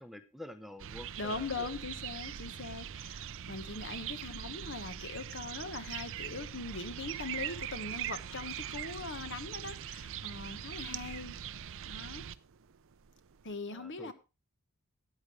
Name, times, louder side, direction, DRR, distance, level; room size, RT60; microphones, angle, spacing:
voice 1, 0.0-1.7 10.9-11.2 13.7-14.1, left 1 dB, ahead, 0.7 m, -48 dB
sound 1, 0.8-13.6, right 9 dB, 60° right, 0.5 m, -42 dB
voice 2, 1.2-11.6 11.9-12.2 13.4-14.1, left 3 dB, 55° left, 1.3 m, -41 dB
13.5 x 9.5 x 3.2 m
head